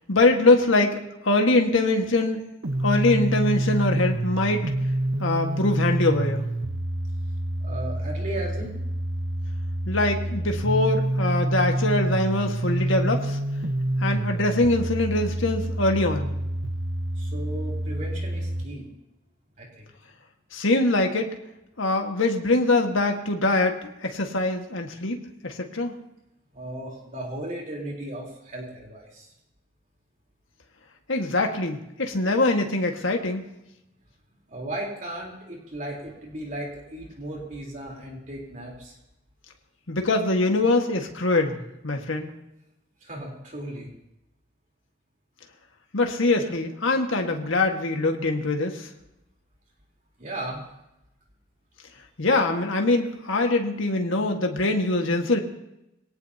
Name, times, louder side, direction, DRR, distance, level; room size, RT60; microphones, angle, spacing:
voice 1, 0.1-1.0 1.2-2.4 2.8-4.6 5.2-6.5 9.9-13.4 14.0-16.3 20.5-21.3 21.8-25.9 31.1-33.4 39.9-42.3 45.9-48.9 52.2-55.4, left 2 dB, 80° left, 3 dB, 1.7 m, -23 dB
sound 1, 2.6-18.6, right 1 dB, 70° right, 1.1 m, -27 dB
voice 2, 7.6-8.8 17.2-18.9 19.6-19.9 26.5-29.3 34.5-39.0 43.0-43.9 50.2-50.6, right 1 dB, 40° right, -1 dB, 3.8 m, -36 dB
23.5 x 18.0 x 2.9 m, 0.87 s
head